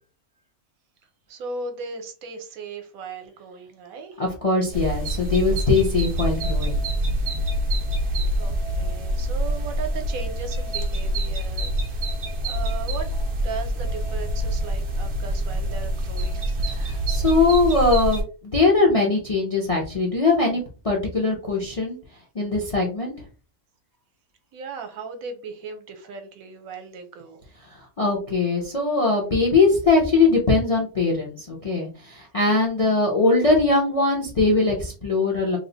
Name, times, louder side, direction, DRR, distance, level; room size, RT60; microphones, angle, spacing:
voice 1, 1.3-4.2 8.4-12.0 12.4-16.5 24.5-27.4, right 4 dB, 70° right, 6 dB, 1.1 m, -37 dB
voice 2, 4.2-6.8 16.7-22.0 22.3-23.1 27.6-35.6, left 3 dB, 40° left, -1 dB, 0.5 m, -21 dB
sound 1, 4.7-18.2, right 1 dB, 50° right, 0.7 m, -26 dB
3.1 x 2.0 x 3.8 m, 0.35 s
omnidirectional pair, 1.6 m